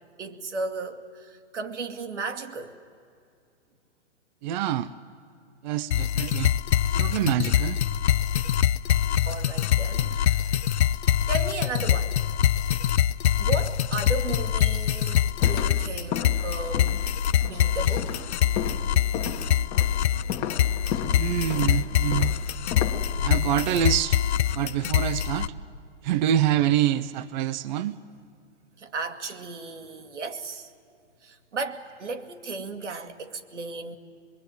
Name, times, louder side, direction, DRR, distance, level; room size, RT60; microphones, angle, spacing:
voice 1, 0.2-2.8 9.3-10.6 11.3-12.2 13.4-17.1 17.4-19.0 20.3-21.1 21.5-22.3 22.8-23.3 28.8-30.7 31.2-34.0, right 3 dB, 80° right, 2.3 m, -35 dB
voice 2, 4.4-4.9 5.6-6.5 6.9-7.8 21.1-22.3 23.2-24.2 24.5-25.5 26.0-28.0, right 11 dB, 40° right, 0.7 m, -26 dB
sound 1, 5.9-25.5, left 10 dB, 65° left, 0.7 m, -24 dB
sound 2, 15.4-23.4, left 9 dB, 25° left, 1.4 m, -35 dB
25.5 x 22.0 x 9.3 m
hypercardioid pair, 130°, 35 cm